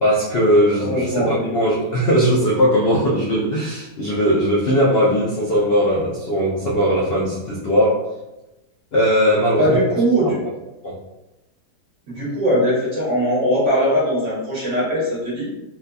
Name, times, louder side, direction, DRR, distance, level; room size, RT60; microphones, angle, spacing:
voice 1, 0.0-8.0 8.9-9.8 10.8-11.0, equal, 75° left, -4 dB, 0.5 m, -19 dB
voice 2, 0.8-1.5 9.6-10.4 12.1-15.5, equal, 50° right, -6 dB, 1.3 m, -20 dB
4.0 x 2.6 x 2.2 m, 0.97 s
omnidirectional pair, 1.8 m